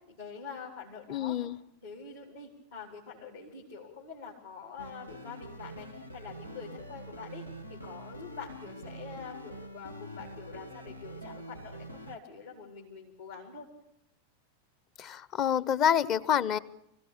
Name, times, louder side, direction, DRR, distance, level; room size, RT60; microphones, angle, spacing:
voice 1, 0.1-1.4 1.8-13.7, left 6 dB, 70° left, -4 dB, 4.3 m, -45 dB
voice 2, 1.1-1.6 15.0-16.6, left 9 dB, 35° left, 19 dB, 0.9 m, -27 dB
sound 1, 4.8-12.2, right 1 dB, 85° left, 1.2 m, -45 dB
25.5 x 16.5 x 8.8 m, 0.79 s
figure-of-eight pair, 90°, 0 cm